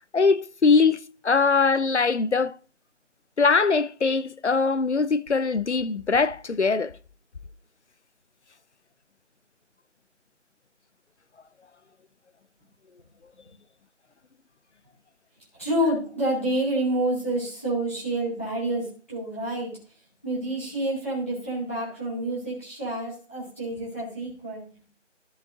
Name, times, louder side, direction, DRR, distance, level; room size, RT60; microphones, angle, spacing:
voice 1, 0.1-2.6 3.4-6.9, left 4 dB, 65° left, 0.7 m, -22 dB
voice 2, 15.5-19.7 20.2-24.6, right 1 dB, 10° left, 2.1 m, -28 dB
13.5 x 5.3 x 3.7 m
figure-of-eight pair, 180°, 37 cm